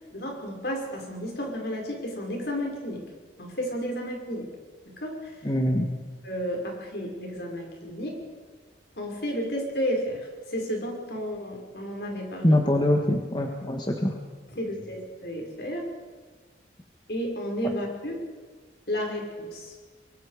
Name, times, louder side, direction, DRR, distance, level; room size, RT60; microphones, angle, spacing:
voice 1, 0.1-3.0 3.4-4.5 4.9-5.3 6.2-8.1 9.0-12.6 14.5-15.8 17.1-18.2 18.9-19.7, equal, 65° left, 0 dB, 5.7 m, -32 dB
voice 2, 5.4-5.9 12.4-14.2, left 1 dB, 25° left, 2 dB, 1.6 m, -23 dB
24.5 x 23.0 x 5.1 m, 1.4 s
head